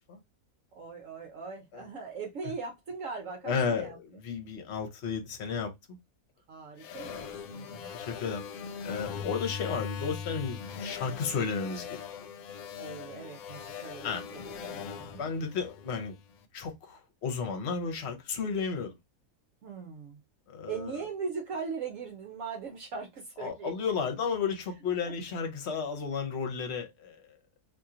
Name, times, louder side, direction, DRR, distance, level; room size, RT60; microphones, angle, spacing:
voice 1, 0.7-4.0 6.5-7.9 12.4-15.3 19.6-20.2 20.7-23.9 25.1-25.2, right 5 dB, 65° right, 1.0 m, -40 dB
voice 2, 3.4-6.0 7.7-8.4 8.8-12.0 14.0-14.2 15.1-16.1 16.5-18.9 20.5-20.9 23.4-27.2, left 5 dB, 50° left, 1.0 m, -33 dB
sound 1, 6.8-16.3, left 7 dB, 75° left, 1.0 m, -40 dB
2.9 x 2.7 x 3.7 m
omnidirectional pair, 1.6 m